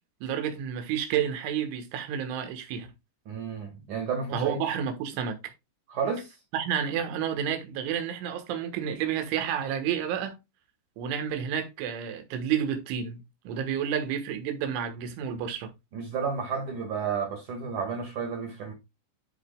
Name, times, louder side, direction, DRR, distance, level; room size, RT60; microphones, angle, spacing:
voice 1, 0.2-2.9 4.3-5.5 6.5-10.4 11.0-15.7, right 8 dB, 75° right, 3.6 m, -30 dB
voice 2, 3.3-4.6 5.9-6.3 15.9-18.7, right 6 dB, 55° right, 2.4 m, -31 dB
14.0 x 5.0 x 2.3 m
omnidirectional pair, 5.8 m